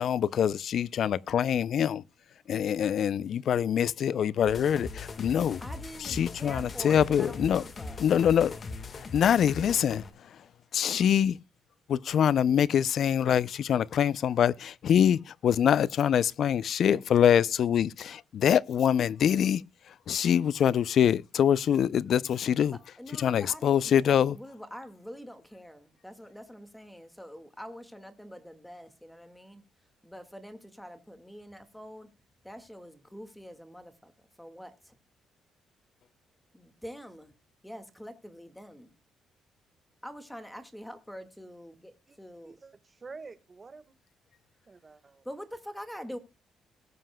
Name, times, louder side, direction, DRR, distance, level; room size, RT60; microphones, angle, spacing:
voice 1, 0.0-2.0 2.5-5.6 6.0-7.6 8.0-8.6 8.8-11.4 11.9-22.8 23.1-24.4, left 9 dB, 65° left, 0.4 m, -25 dB
sound 1, 4.5-10.1, left 3 dB, 45° left, 1.5 m, -40 dB
voice 2, 5.6-8.0 22.7-29.6 30.0-32.1 32.4-35.0 36.5-37.3 37.6-38.9 40.0-42.6 45.2-46.2, equal, 5° left, 1.8 m, -45 dB
voice 3, 42.4-43.9 44.7-45.2, right 4 dB, 30° right, 1.5 m, -48 dB
19.0 x 7.7 x 2.2 m
cardioid pair, 90°, 0 cm